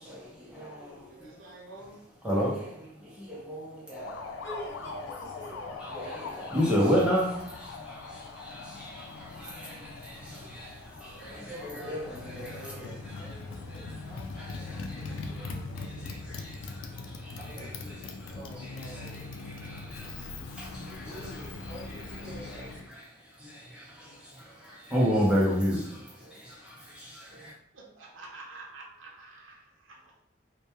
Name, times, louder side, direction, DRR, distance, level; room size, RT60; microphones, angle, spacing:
voice 1, 0.1-1.2 2.2-4.4 5.8-14.1 14.3-17.6 18.2-21.3 21.9-22.0 22.5-22.6 22.9-27.5, equal, 5° right, 0.5 m, -33 dB
voice 2, 0.9-2.1 11.0-11.5 27.7-30.3, right 3 dB, 85° right, 0.5 m, -49 dB
Motorcycle, 3.9-22.9, left 3 dB, 80° left, 0.3 m, -41 dB
voice 3, 4.4-6.9 10.4-10.5 11.4-15.9 17.4-19.2 20.9-22.9, equal, 10° left, 0.9 m, -47 dB
2.2 x 2.1 x 2.9 m
head